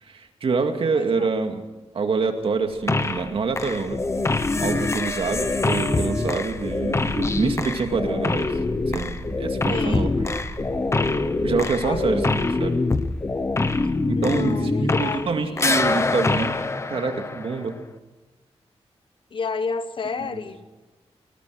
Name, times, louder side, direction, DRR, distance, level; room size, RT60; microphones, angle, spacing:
voice 1, 0.0-1.6 1.9-4.0 4.6-8.6 8.9-10.3 11.4-12.8 14.1-16.6 16.9-17.8 20.3-20.4, right 4 dB, 60° right, 5 dB, 2.2 m, -26 dB
voice 2, 0.9-1.3 9.7-10.2 11.6-12.3 14.2-15.7 19.3-20.6, left 4 dB, 50° left, 12 dB, 1.0 m, -31 dB
sound 1, 2.6-16.2, equal, ahead, 3.7 m, -38 dB
sound 2, 2.9-3.3 3.6-15.3 15.6-17.8, left 3 dB, 25° left, 1.0 m, -24 dB
20.0 x 20.0 x 6.5 m, 1.2 s
wide cardioid pair, 140°, 11 cm